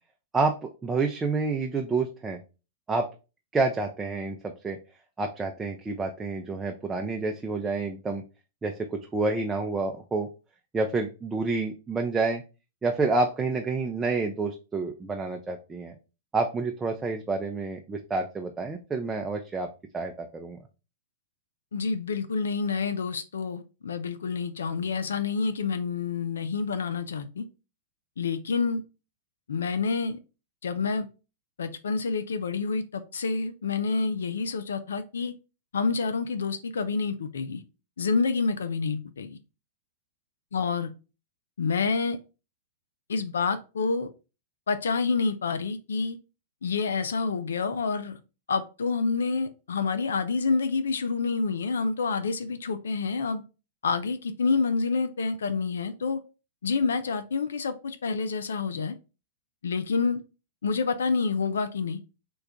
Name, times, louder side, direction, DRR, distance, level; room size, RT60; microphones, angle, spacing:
voice 1, 0.3-2.4 2.9-3.1 3.5-4.8 5.2-8.2 8.6-10.3 10.7-12.4 12.8-16.0 16.3-19.7 19.9-20.6, right 3 dB, 15° right, 0.4 m, -28 dB
voice 2, 21.7-27.4 28.2-28.8 29.5-30.2 30.6-31.1 31.6-35.3 35.7-37.6 38.0-39.4 40.5-40.9 41.6-42.2 43.1-44.1 44.7-46.2 46.6-48.2 48.5-53.4 53.8-56.2 56.6-59.0 59.6-60.2 60.6-62.0, left 4 dB, 90° left, 0.4 m, -28 dB
3.8 x 2.3 x 3.5 m
hypercardioid pair, 125°, 0 cm